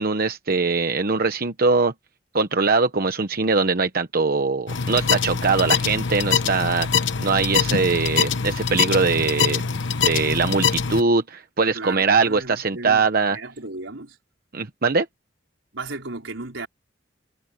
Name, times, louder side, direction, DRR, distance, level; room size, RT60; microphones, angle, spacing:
voice 1, 0.0-1.9 2.3-9.6 10.0-13.4 14.5-15.1, right 4 dB, 50° right, 1.0 m, -22 dB
sound 1, 4.7-11.0, left 6 dB, 70° left, 1.1 m, -23 dB
voice 2, 11.7-14.2 15.7-16.7, right 3 dB, 85° right, 4.5 m, -35 dB
head